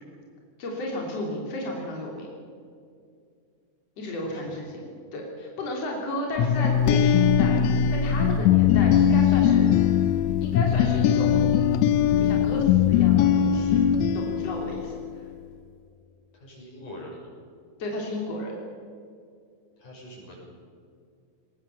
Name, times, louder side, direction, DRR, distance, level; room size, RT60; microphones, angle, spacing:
voice 1, 0.6-2.3 4.0-4.8 5.1-7.6 7.9-9.7 10.4-11.3 12.2-15.0 17.8-18.5, left 1 dB, 55° left, -1 dB, 4.3 m, -33 dB
voice 2, 4.2-4.6 16.3-17.3 19.8-20.4, equal, 90° left, -2 dB, 8.2 m, -45 dB
sound 1, 6.4-15.1, left 9 dB, 75° left, 1.9 m, -20 dB
22.0 x 20.0 x 7.2 m, 2.3 s
omnidirectional pair, 3.5 m